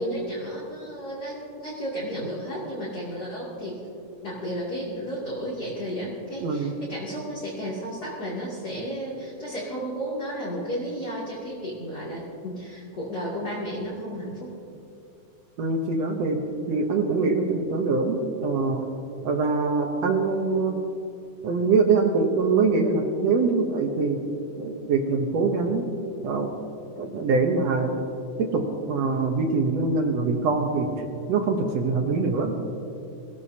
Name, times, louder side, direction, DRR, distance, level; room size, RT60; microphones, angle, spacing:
voice 1, 0.0-3.8 4.2-14.5, equal, 30° left, -8 dB, 3.1 m, -33 dB
voice 2, 6.4-6.8 15.6-16.4 16.7-18.9 19.2-20.8 21.4-24.2 24.5-25.9 26.2-26.5 27.0-27.9 28.4-31.0 31.3-32.5, right 4 dB, 65° right, 3 dB, 1.9 m, -24 dB
24.0 x 16.5 x 2.8 m, 2.5 s
omnidirectional pair, 3.7 m